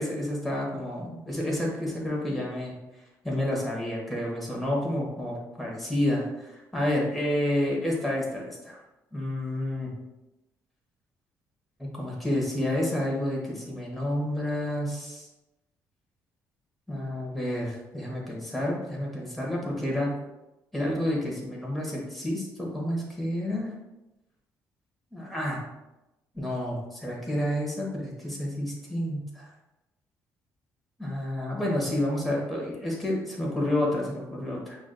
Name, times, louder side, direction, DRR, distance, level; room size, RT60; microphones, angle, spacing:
voice 1, 0.0-2.7 3.2-8.8 9.1-9.9 11.8-15.3 16.9-20.1 20.7-23.7 25.1-25.6 26.3-29.5 31.0-34.8, left 1 dB, ahead, -3 dB, 1.1 m, -30 dB
5.9 x 2.5 x 2.3 m, 0.98 s
cardioid pair, 120°, 7 cm